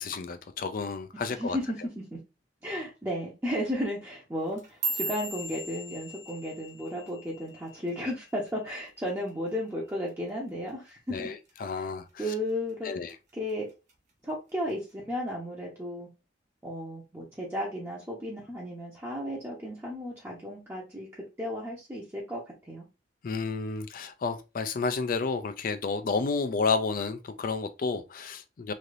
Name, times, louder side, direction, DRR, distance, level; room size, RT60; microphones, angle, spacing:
voice 1, 0.0-1.6 11.1-12.2 12.8-13.2 23.2-28.7, left 4 dB, 50° left, 0.4 m, -31 dB
voice 2, 1.1-2.2 2.6-11.3 12.2-12.9 13.3-13.7 14.2-14.8 15.1-16.1 16.6-22.4 22.7-22.9, equal, 15° right, 0.7 m, -34 dB
sound 1, 4.4-8.8 9.1-9.5 9.9-10.3 10.7-10.9 11.5-11.9 12.3-13.1 13.5-13.9 14.7-14.8, right 2 dB, 40° right, 1.1 m, -38 dB
3.2 x 2.7 x 2.5 m
head